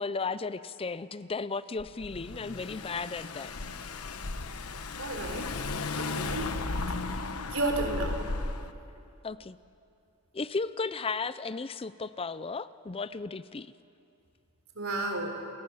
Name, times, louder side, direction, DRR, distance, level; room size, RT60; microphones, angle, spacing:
voice 1, 0.0-3.5 9.2-9.6 10.3-13.7, left 4 dB, 25° left, 15 dB, 0.5 m, -35 dB
Car / Engine, 1.8-8.7, left 3 dB, 80° left, 1.1 m, -35 dB
voice 2, 5.0-5.5 6.0-6.5 7.1-7.2 7.5-8.2 14.7-15.4, right 2 dB, 70° right, 3 dB, 4.1 m, -32 dB
29.0 x 22.0 x 7.2 m, 2.5 s
head